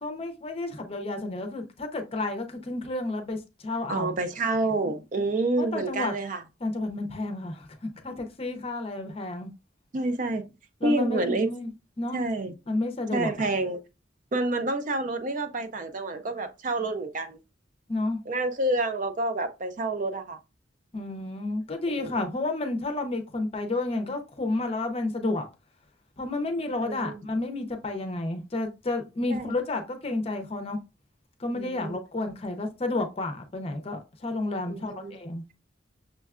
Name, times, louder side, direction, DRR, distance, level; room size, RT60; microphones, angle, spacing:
voice 1, 0.0-4.2 5.6-6.1 6.6-7.7 8.0-9.5 10.8-11.7 12.0-12.2 12.7-13.3 17.9-18.2 20.9-25.5 26.2-30.8 31.4-35.4, left 2 dB, 30° left, 0.6 m, -31 dB
voice 2, 3.9-6.4 9.9-10.4 10.8-11.5 12.1-12.5 13.1-13.8 14.3-17.4 18.3-20.4 21.9-22.1 26.8-27.2 29.3-29.5 31.5-32.0 34.7-35.1, right 2 dB, 40° right, 0.4 m, -28 dB
6.2 x 2.2 x 2.3 m
head